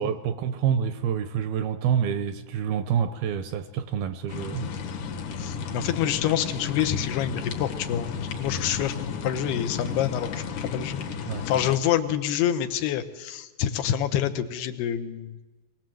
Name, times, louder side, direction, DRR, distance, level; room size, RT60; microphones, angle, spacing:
voice 1, 0.0-4.7 11.3-11.5, right 8 dB, 75° right, 10 dB, 2.4 m, -27 dB
sound 1, 4.3-11.8, left 6 dB, 55° left, 2.7 m, -33 dB
voice 2, 5.4-11.0 11.5-15.4, left 10 dB, 80° left, 9 dB, 2.9 m, -27 dB
24.0 x 18.5 x 7.7 m, 1.2 s
omnidirectional pair, 4.8 m